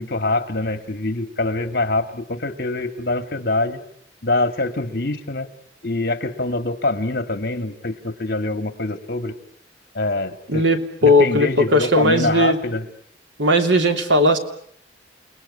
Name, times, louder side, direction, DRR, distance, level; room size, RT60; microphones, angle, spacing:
voice 1, 0.0-3.8 4.2-5.5 5.8-9.3 9.9-10.6 11.0-12.9, left 2 dB, 55° left, 10 dB, 2.3 m, -24 dB
voice 2, 10.5-12.6 13.4-14.4, left 1 dB, 90° right, 6 dB, 3.0 m, -17 dB
29.5 x 20.0 x 9.9 m, 0.68 s
head